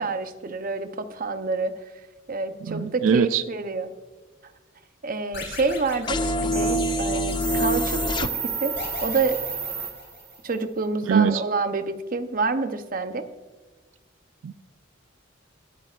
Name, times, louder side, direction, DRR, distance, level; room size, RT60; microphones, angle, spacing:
voice 1, 0.0-1.7 2.3-3.9 5.0-8.8 9.0-9.4 10.4-13.3, right 3 dB, 45° right, 9 dB, 0.7 m, -28 dB
voice 2, 2.7-3.4 11.0-11.4 14.4-14.6, right 6 dB, 85° right, 13 dB, 0.4 m, -22 dB
sound 1, 5.3-7.3 8.7-10.5, left 4 dB, 60° left, 4.4 m, -39 dB
sound 2, 6.1-8.3, equal, 25° left, 0.4 m, -25 dB
sound 3, 6.5-10.4, right 6 dB, 15° right, 1.1 m, -32 dB
24.0 x 8.8 x 2.5 m, 1.3 s
head